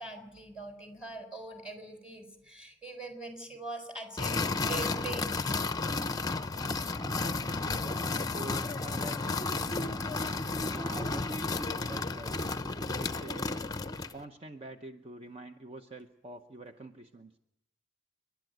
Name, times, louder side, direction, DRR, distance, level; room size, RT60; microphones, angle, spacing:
voice 1, 0.0-5.4, right 2 dB, 5° right, 4 dB, 4.3 m, -42 dB
sound 1, 4.2-14.2, left 3 dB, 20° left, 0.7 m, -32 dB
voice 2, 7.0-9.9 10.7-12.3 13.0-13.5 14.1-17.3, right 2 dB, 30° right, 6 dB, 0.8 m, -46 dB
29.0 x 11.5 x 9.2 m, 0.84 s
head